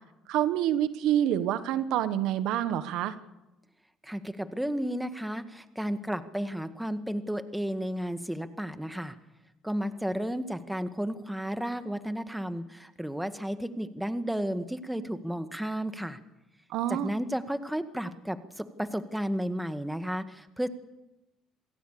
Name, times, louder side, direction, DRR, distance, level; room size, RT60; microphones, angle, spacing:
voice 1, 0.3-3.1 16.7-17.1, right 11 dB, 75° right, 12 dB, 1.3 m, -27 dB
voice 2, 4.0-9.2 9.6-16.2 16.9-20.7, equal, 5° right, 9 dB, 1.9 m, -33 dB
27.0 x 17.5 x 6.9 m, 1.0 s
supercardioid pair, 80°, 0 cm